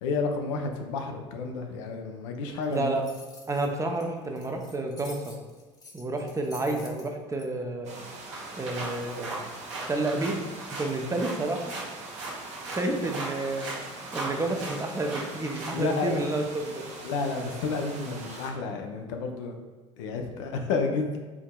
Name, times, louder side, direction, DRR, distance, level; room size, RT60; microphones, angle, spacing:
voice 1, 0.0-2.9 15.7-16.2 17.0-19.5 20.0-21.2, left 4 dB, 70° left, 3 dB, 0.5 m, -30 dB
sound 1, 2.6-7.4, left 2 dB, 25° left, 0.9 m, -49 dB
voice 2, 2.7-3.0 3.5-5.3 5.9-7.9 8.6-9.3 9.9-10.4 10.7-11.7 12.6-13.7 14.1-16.9, right 2 dB, 20° right, 3 dB, 0.6 m, -30 dB
sound 2, 7.8-18.5, right 2 dB, 45° right, 0.9 m, -43 dB
sound 3, 8.3-16.0, right 2 dB, 80° right, 1.2 m, -38 dB
4.6 x 2.7 x 2.2 m, 1.3 s
hypercardioid pair, 65°, 16 cm